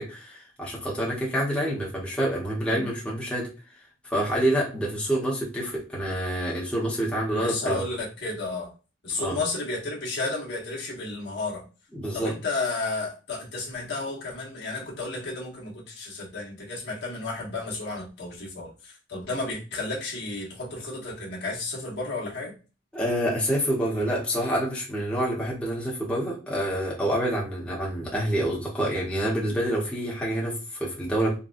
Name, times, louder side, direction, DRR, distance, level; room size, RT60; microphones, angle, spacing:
voice 1, 0.0-3.5 4.0-7.8 9.2-9.4 11.9-12.3 22.9-31.4, right 1 dB, 5° left, 0.9 m, -27 dB
voice 2, 7.3-8.7 9.0-11.6 12.1-22.5, left 3 dB, 65° left, 1.2 m, -32 dB
4.0 x 2.1 x 2.5 m
head